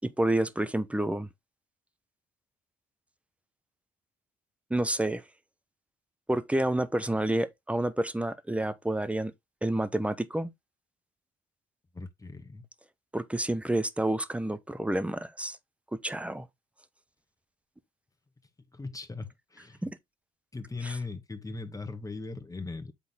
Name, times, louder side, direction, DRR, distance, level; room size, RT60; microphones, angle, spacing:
voice 1, 0.0-1.3 4.7-5.2 6.3-9.3 9.6-10.5 13.1-15.6 16.0-16.5 19.8-20.0 20.8-21.0, right 1 dB, 5° right, 1.2 m, -29 dB
voice 2, 11.9-12.6 18.7-19.8 20.5-22.9, left 3 dB, 20° left, 1.8 m, -39 dB
8.7 x 3.8 x 3.8 m
hypercardioid pair, 50°, 17 cm